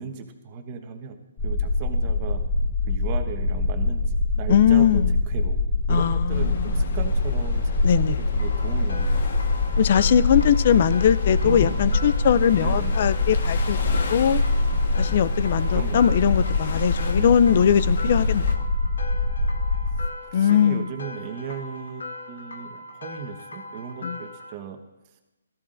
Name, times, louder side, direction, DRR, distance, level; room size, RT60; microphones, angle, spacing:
voice 1, 0.0-2.4 2.9-5.6 5.9-9.3 10.8-10.9 11.4-11.9 12.5-12.9 15.7-16.3 17.1-17.7 20.2-24.8, right 7 dB, 25° right, 5 dB, 1.2 m, -36 dB
sound 1, 1.4-20.1, left 2 dB, 15° left, 1.0 m, -24 dB
voice 2, 4.5-5.2 5.9-6.9 7.8-8.2 9.8-14.4 15.0-18.7 20.3-20.9 24.0-24.2, left 8 dB, 40° left, 17 dB, 0.4 m, -21 dB
sound 2, 6.3-18.6, left 4 dB, 55° left, 1.4 m, -38 dB
sound 3, 8.4-24.5, left 2 dB, 80° left, 1.4 m, -40 dB
18.0 x 14.0 x 2.6 m, 1.0 s
hypercardioid pair, 165°, 0 cm